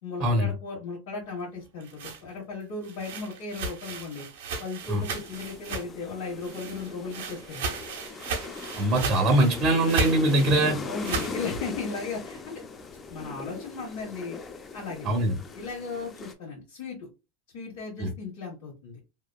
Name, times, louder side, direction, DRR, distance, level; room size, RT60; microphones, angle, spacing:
voice 1, 0.0-4.3 4.6-7.7 10.8-12.6 13.1-14.4 14.7-15.2 15.5-17.1 17.5-19.0, left 4 dB, 75° left, -4 dB, 1.4 m, -36 dB
sound 1, 1.6-6.1 6.4-11.4, right 4 dB, 80° right, 0.8 m, -35 dB
sound 2, 4.8-16.3, left 4 dB, 25° left, 0.5 m, -40 dB
voice 2, 8.8-10.8 15.0-15.4 18.0-18.1, right 1 dB, 40° right, 1 dB, 0.7 m, -22 dB
2.9 x 2.3 x 2.2 m, 0.27 s
supercardioid pair, 115°, 0 cm